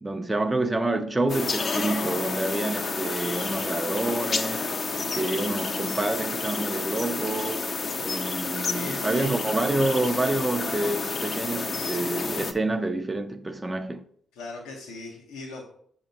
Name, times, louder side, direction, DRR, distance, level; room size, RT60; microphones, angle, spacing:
voice 1, 0.0-4.7 5.0-7.7 8.0-14.0, right 2 dB, 20° right, 0.5 m, -28 dB
sound 1, 1.3-12.5, left 4 dB, 45° left, 0.6 m, -30 dB
voice 2, 8.7-9.3 14.3-15.7, left 3 dB, 85° left, 1.0 m, -38 dB
6.7 x 2.9 x 5.2 m
supercardioid pair, 55°, 0 cm